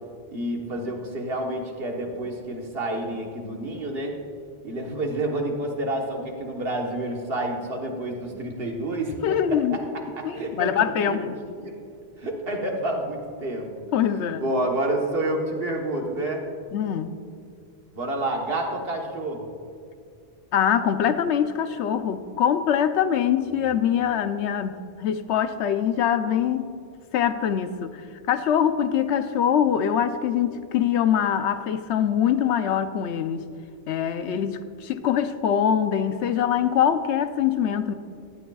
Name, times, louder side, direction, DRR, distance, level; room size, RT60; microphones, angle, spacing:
voice 1, 0.3-4.2 4.6-9.2 9.5-9.6 10.2-10.7 11.1-11.2 11.6-11.8 12.2-13.7 14.4-16.4 17.9-19.5, right 1 dB, 60° right, 1 dB, 1.5 m, -29 dB
voice 2, 9.2-9.9 10.2-11.2 13.9-14.4 16.7-17.1 20.5-26.7 27.1-28.0 28.3-33.4 33.9-37.9, left 9 dB, 90° left, 10 dB, 0.9 m, -23 dB
16.5 x 12.0 x 2.4 m, 2.3 s
omnidirectional pair, 1.1 m